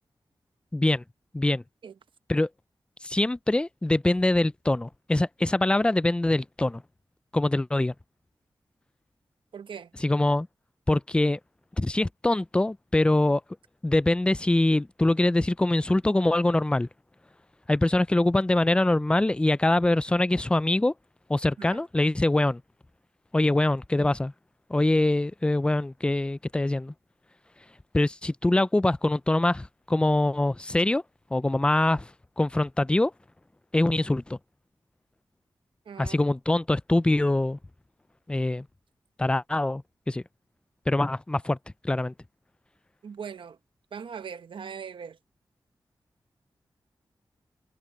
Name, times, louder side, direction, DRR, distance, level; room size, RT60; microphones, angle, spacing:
voice 1, 0.7-1.0 1.3-1.6 2.3-2.5 3.0-6.8 7.3-7.9 10.0-10.5 10.9-11.4 11.8-13.4 13.8-16.9 17.7-20.9 21.3-22.6 23.3-24.3 24.7-26.9 27.9-31.0 31.3-32.1 32.4-33.1 33.7-34.4 36.0-37.6 38.3-38.7 39.2-39.8 40.1-40.2 40.9-41.6 41.8-42.1, left 2 dB, 10° left, 0.4 m, -24 dB
voice 2, 9.5-9.9 21.6-21.8 35.9-36.2 43.0-43.6 43.9-45.2, right 7 dB, 90° right, 0.9 m, -40 dB
wide cardioid pair, 125°, 8 cm